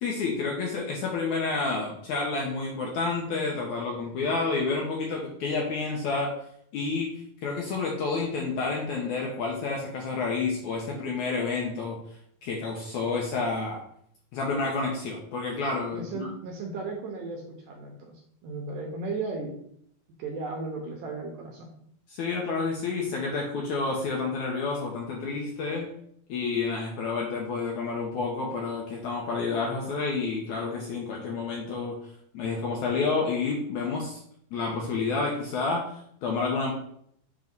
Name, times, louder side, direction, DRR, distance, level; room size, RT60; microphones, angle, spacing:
voice 1, 0.0-6.3 6.7-7.1 7.4-12.0 12.4-13.8 14.3-16.3 22.1-25.9 26.3-32.0 32.3-34.2 34.5-36.7, left 4 dB, 80° left, -1 dB, 1.7 m, -29 dB
voice 2, 15.9-19.6 20.2-21.7, right 3 dB, 70° right, 0 dB, 2.1 m, -35 dB
7.4 x 3.1 x 5.3 m, 0.69 s
omnidirectional pair, 4.5 m